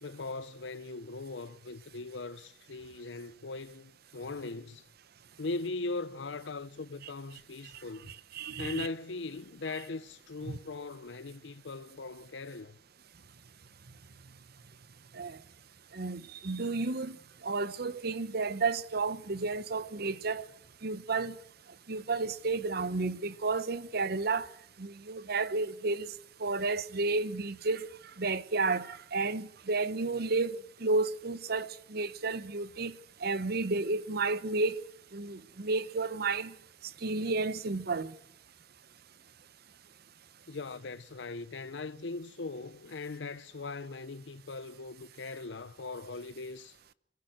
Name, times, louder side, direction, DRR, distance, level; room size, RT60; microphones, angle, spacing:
voice 1, 0.0-4.8 5.4-8.1 8.6-12.7 40.5-46.7, left 3 dB, 75° left, 0.8 m, -40 dB
voice 2, 8.1-8.9 10.5-10.6 15.1-15.4 15.9-17.2 17.4-20.5 20.8-21.4 21.9-24.5 24.8-26.1 26.4-27.9 28.2-34.8 35.1-36.5 37.0-38.1, right 3 dB, 60° right, 0.9 m, -32 dB
24.5 x 14.5 x 7.8 m
head